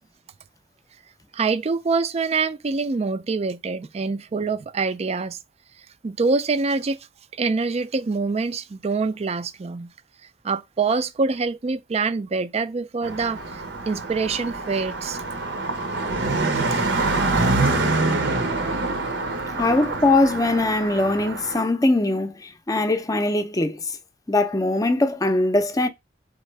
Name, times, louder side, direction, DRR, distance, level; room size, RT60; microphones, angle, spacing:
voice 1, 1.3-5.4 6.0-7.0 7.4-9.9 10.4-13.4 13.9-15.2 16.5-16.8, right 4 dB, 35° right, 0.4 m, -25 dB
Car passing by, 13.0-21.6, right 3 dB, 80° right, 0.9 m, -25 dB
voice 2, 19.6-23.8 24.3-25.9, left 2 dB, 20° left, 0.6 m, -21 dB
4.2 x 3.6 x 3.2 m
head